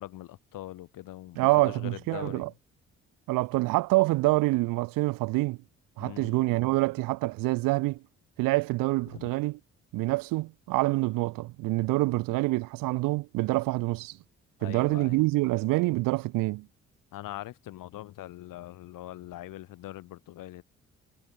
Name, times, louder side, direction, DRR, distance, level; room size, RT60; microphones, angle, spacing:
voice 1, 0.0-2.5 6.0-6.4 9.1-9.3 14.6-15.2 17.1-20.6, left 15 dB, 80° left, 5.5 m, -42 dB
voice 2, 1.4-2.5 3.3-5.6 6.0-8.0 8.4-9.6 9.9-14.2 14.6-16.7, right 21 dB, 80° right, 0.8 m, -26 dB
hypercardioid pair, 50°, 32 cm